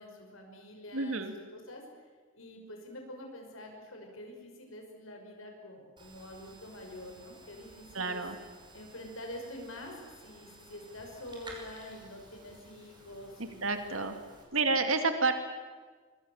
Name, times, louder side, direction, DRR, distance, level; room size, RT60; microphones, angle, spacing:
voice 1, 0.0-1.2 1.5-1.8 2.3-8.2 8.7-13.6 14.6-14.8, left 1 dB, 85° left, 2 dB, 5.7 m, -46 dB
voice 2, 0.9-1.3 7.9-8.4 13.6-14.2 14.5-15.3, right 3 dB, 90° right, 7 dB, 2.4 m, -29 dB
sound 1, 6.0-14.4, right 2 dB, 20° right, 5.5 m, -54 dB
24.5 x 24.5 x 7.3 m, 1.5 s
head